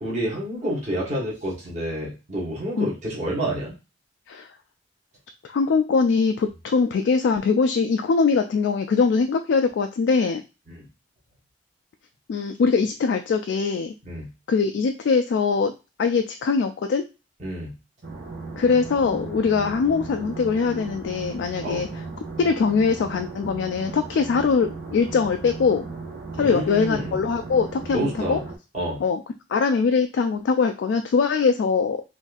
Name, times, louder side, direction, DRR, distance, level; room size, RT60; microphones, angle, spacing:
voice 1, 0.0-3.7 10.7-10.8 14.0-14.3 17.4-17.7 21.6-21.8 26.4-27.1 27.9-28.4 28.7-29.0, right 1 dB, 40° right, -5 dB, 1.3 m, -28 dB
voice 2, 5.5-10.4 12.3-13.9 14.5-15.7 16.0-17.0 18.6-21.9 22.4-25.9 26.4-28.4 29.0-29.2 29.5-32.0, left 5 dB, 80° left, 6 dB, 0.3 m, -22 dB
sound 1, 18.0-28.6, right 3 dB, 60° right, 0.8 m, -36 dB
3.9 x 2.5 x 2.4 m, 0.29 s
head